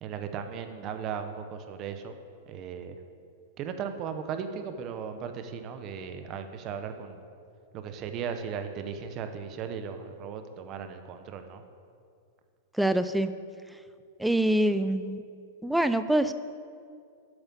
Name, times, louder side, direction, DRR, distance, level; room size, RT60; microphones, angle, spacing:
voice 1, 0.0-2.1 2.5-3.0 3.6-7.2 7.7-11.6, right 7 dB, 30° right, 8 dB, 0.8 m, -37 dB
voice 2, 12.8-13.3 14.2-15.2 15.6-16.3, right 1 dB, ahead, 11 dB, 0.3 m, -25 dB
8.0 x 7.8 x 7.3 m, 2.4 s
supercardioid pair, 155°, 0 cm